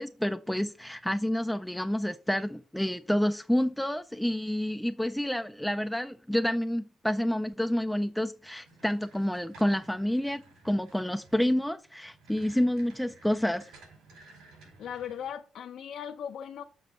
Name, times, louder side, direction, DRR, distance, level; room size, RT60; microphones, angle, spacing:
voice 1, 0.0-13.7, left 1 dB, 5° left, 0.4 m, -29 dB
sound 1, 8.6-15.3, right 3 dB, 85° right, 4.8 m, -55 dB
voice 2, 14.8-16.6, left 8 dB, 65° left, 0.7 m, -38 dB
6.9 x 6.7 x 4.0 m
cardioid pair, 135°, 0 cm